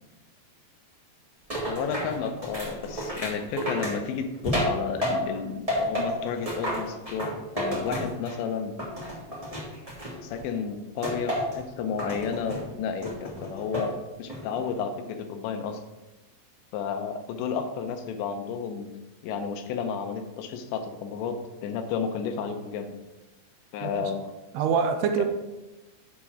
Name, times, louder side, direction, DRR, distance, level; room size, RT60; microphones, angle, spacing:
sound 1, 1.5-5.4 5.7-8.5 8.8-10.4 11.0-11.6 12.0-12.6 13.0-13.9 14.3-14.7, equal, 10° right, 1.7 m, -31 dB
voice 1, 1.7-8.7 10.2-15.8 16.7-18.9 19.2-22.9 23.7-24.3 25.2-25.3, left 6 dB, 90° left, 7 dB, 3.2 m, -32 dB
voice 2, 24.5-25.2, right 6 dB, 85° right, 6 dB, 2.5 m, -25 dB
8.1 x 7.2 x 5.0 m, 1.1 s
omnidirectional pair, 4.9 m